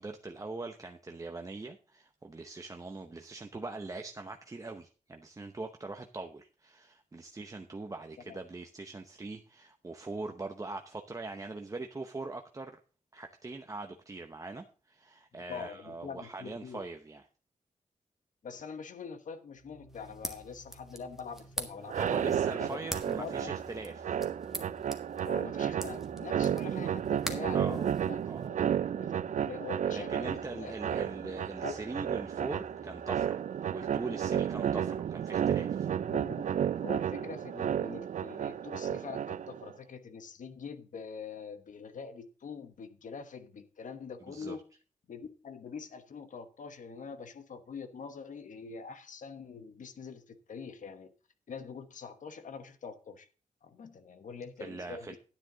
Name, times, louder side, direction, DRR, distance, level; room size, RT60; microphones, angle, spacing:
voice 1, 0.0-12.8 13.1-17.2 21.9-24.2 27.5-27.9 28.3-28.5 29.9-33.4 33.7-35.9 44.3-44.6 54.6-55.2, right 3 dB, 25° right, 0.7 m, -42 dB
voice 2, 15.5-16.8 18.4-22.8 23.1-23.5 25.2-28.5 29.0-29.1 29.4-31.3 31.6-31.8 36.1-36.5 36.8-44.6 45.1-51.1 51.5-53.3 53.6-55.2, left 5 dB, 75° left, 1.1 m, -44 dB
sound 1, 19.5-33.2, left 2 dB, 55° left, 2.2 m, -55 dB
sound 2, 19.9-28.5, right 1 dB, 5° right, 1.4 m, -45 dB
sound 3, 21.8-39.7, right 9 dB, 70° right, 0.4 m, -32 dB
10.0 x 9.2 x 3.8 m
wide cardioid pair, 105°, 13 cm